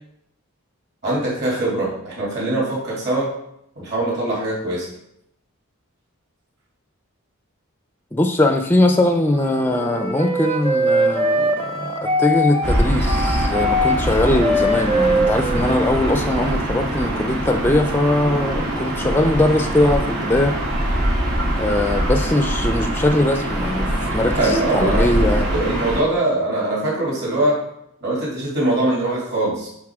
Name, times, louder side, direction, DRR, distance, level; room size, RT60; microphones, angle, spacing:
voice 1, 1.0-3.3 3.8-4.9 24.3-25.1 25.5-27.6 28.0-29.7, right 2 dB, 50° right, -5 dB, 2.8 m, -22 dB
voice 2, 8.1-20.6 21.6-25.5, left 1 dB, 10° left, 6 dB, 0.4 m, -20 dB
Wind instrument woodwind instrument, 9.2-16.7, equal, 25° right, 0.8 m, -22 dB
Gull seagull / Ocean, 12.6-26.0, right 1 dB, 70° right, 2.1 m, -23 dB
9.5 x 4.0 x 3.6 m, 0.76 s
head